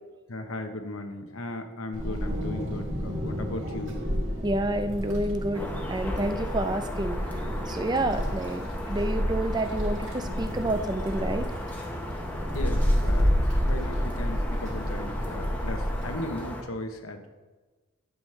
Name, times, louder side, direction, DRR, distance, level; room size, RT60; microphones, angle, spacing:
voice 1, 0.3-4.0 12.5-13.4 13.7-17.3, left 1 dB, 80° left, 6 dB, 1.0 m, -36 dB
Wind, 1.9-16.1, equal, 60° right, 2.2 m, -30 dB
voice 2, 4.4-7.2 7.7-11.5, right 1 dB, 20° right, 9 dB, 0.4 m, -29 dB
sound 1, 5.5-16.6, left 1 dB, 10° left, 0.8 m, -37 dB
11.0 x 7.2 x 3.3 m, 1.3 s
head